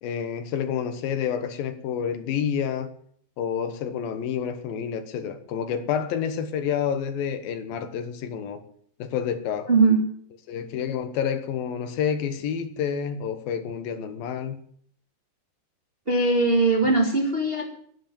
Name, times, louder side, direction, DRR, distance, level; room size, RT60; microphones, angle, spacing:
voice 1, 0.0-2.9 3.4-8.6 9.0-9.7 10.5-14.6, left 8 dB, 80° left, 2.9 m, -29 dB
voice 2, 9.7-10.0 16.1-17.6, right 3 dB, 20° right, 1.8 m, -20 dB
11.0 x 9.8 x 8.7 m
omnidirectional pair, 4.2 m